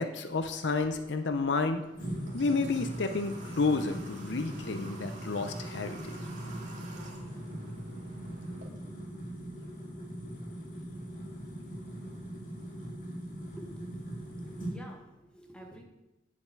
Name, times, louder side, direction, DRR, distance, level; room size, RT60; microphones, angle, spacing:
voice 1, 0.0-1.8 2.3-6.2, left 3 dB, 65° left, 8 dB, 0.7 m, -30 dB
Water / Water tap faucet, 0.7-8.7, right 2 dB, 40° right, 2.2 m, -50 dB
sound 1, 1.9-14.8, right 1 dB, 50° left, 4.6 m, -40 dB
voice 2, 13.6-15.8, equal, 5° left, 0 dB, 1.7 m, -50 dB
7.7 x 7.3 x 8.3 m, 0.97 s
head